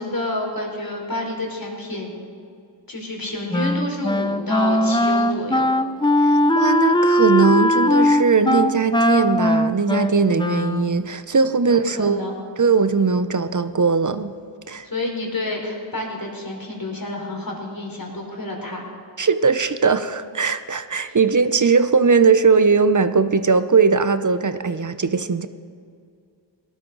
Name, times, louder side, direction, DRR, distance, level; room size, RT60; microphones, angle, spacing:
voice 1, 0.0-2.1 2.9-5.7 11.7-12.4 14.8-18.9 21.0-21.2, left 1 dB, 45° left, 0 dB, 3.8 m, -29 dB
Wind instrument woodwind instrument, 3.5-11.0, left 1 dB, 10° left, 0.6 m, -19 dB
voice 2, 6.2-12.2 12.6-14.3 14.7-14.9 19.2-25.5, right 5 dB, 40° right, 11 dB, 0.7 m, -19 dB
18.5 x 12.5 x 3.9 m, 2.3 s
cardioid pair, 45°, 48 cm